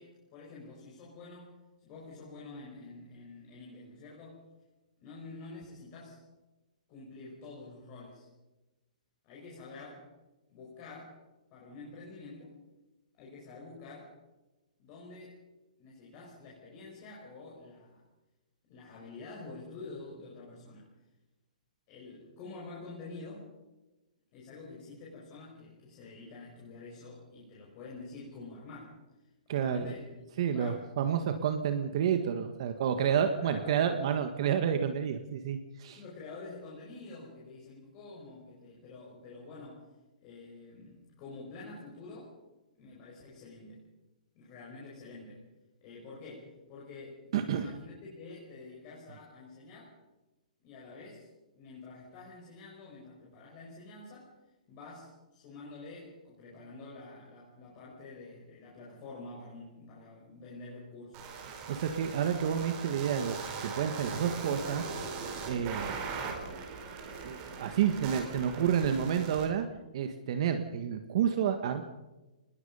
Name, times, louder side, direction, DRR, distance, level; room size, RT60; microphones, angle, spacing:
voice 1, 0.0-1.5 1.8-4.5 5.0-6.2 6.9-8.3 9.2-10.1 10.5-11.2 11.5-12.6 13.1-14.1 14.8-15.4 15.8-18.0 18.7-20.9 21.9-23.5 24.3-30.9 33.4-33.8 36.0-39.9 40.2-42.4 42.8-43.8 44.3-45.4 45.8-50.0 50.6-51.3 51.5-54.3 54.7-61.3, left 3 dB, 25° left, -4 dB, 5.7 m, -48 dB
voice 2, 29.5-29.9 30.4-36.0 47.3-47.7 61.5-63.4 63.6-64.8 65.4-66.0 67.2-69.6 69.9-71.8, right 8 dB, 40° right, 7 dB, 1.5 m, -30 dB
sound 1, 61.1-69.4, right 5 dB, 25° right, 4.6 m, -40 dB
25.0 x 20.5 x 5.6 m, 1.1 s
hypercardioid pair, 170°, 4 cm